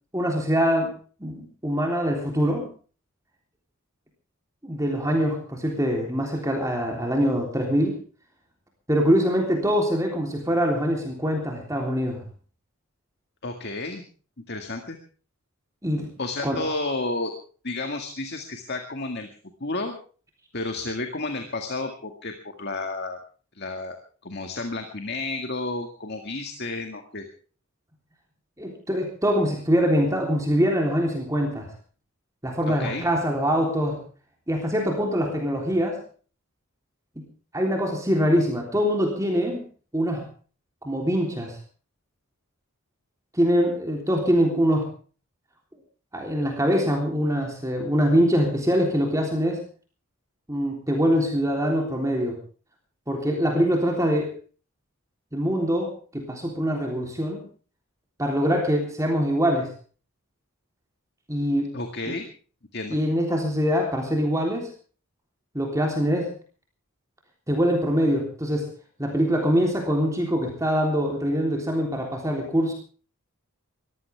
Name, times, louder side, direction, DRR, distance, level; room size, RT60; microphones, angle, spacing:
voice 1, 0.1-0.9 1.2-2.7 4.6-8.0 8.9-12.2 15.8-16.1 16.4-16.6 28.6-31.7 32.4-34.0 34.5-36.0 37.5-39.6 39.9-40.3 40.8-41.6 43.3-44.9 46.1-49.6 50.5-52.4 53.1-54.3 55.3-57.4 58.2-59.7 61.3-61.7 62.1-62.2 62.9-64.7 65.5-66.3 67.5-68.7 69.0-72.7, equal, 15° right, 1 dB, 3.4 m, -23 dB
voice 2, 13.4-14.0 14.5-15.0 16.2-17.3 17.6-19.3 19.6-19.9 20.5-23.2 23.5-24.0 24.2-27.3 32.7-33.0 61.7-62.3 62.7-63.0, left 2 dB, 50° left, 5 dB, 2.0 m, -31 dB
22.5 x 15.5 x 3.5 m, 0.40 s
head